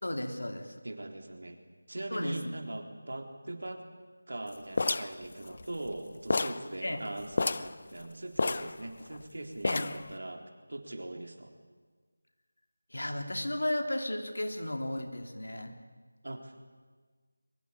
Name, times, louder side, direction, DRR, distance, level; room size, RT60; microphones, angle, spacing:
voice 1, 0.0-0.7 2.1-2.5 6.8-7.0 9.6-9.9 12.9-15.8, left 1 dB, 75° left, 5 dB, 3.5 m, -34 dB
voice 2, 0.8-1.6 1.9-3.8 4.3-11.5 16.2-16.6, right 1 dB, 65° right, 5 dB, 3.8 m, -41 dB
sound 1, 4.8-6.0 6.3-6.7 7.0-7.1 7.3-7.8 8.4-9.2 9.6-10.1, left 3 dB, 45° left, 0.8 m, -30 dB
22.5 x 21.5 x 8.8 m, 1.5 s
figure-of-eight pair, 170°, 0 cm